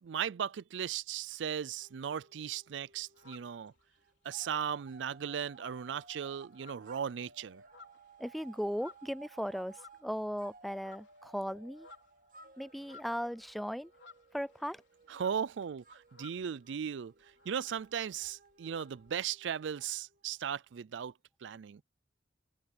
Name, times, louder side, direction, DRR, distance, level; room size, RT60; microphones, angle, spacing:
voice 1, 0.0-3.7 4.2-7.6 15.1-17.1 17.5-21.1 21.4-21.8, right 8 dB, 75° right, 0.4 m, -37 dB
sound 1, 1.8-3.4 3.7-20.8, right 4 dB, 50° right, 1.8 m, -59 dB
sound 2, 2.8-4.0 4.4-6.2 6.5-7.1 7.5-10.4 10.7-11.3 11.6-16.6 16.9-17.0 17.2-19.1, left 5 dB, 70° left, 3.9 m, -58 dB
voice 2, 8.2-11.9 12.6-13.9 14.3-14.8, equal, ahead, 0.3 m, -37 dB
open air
head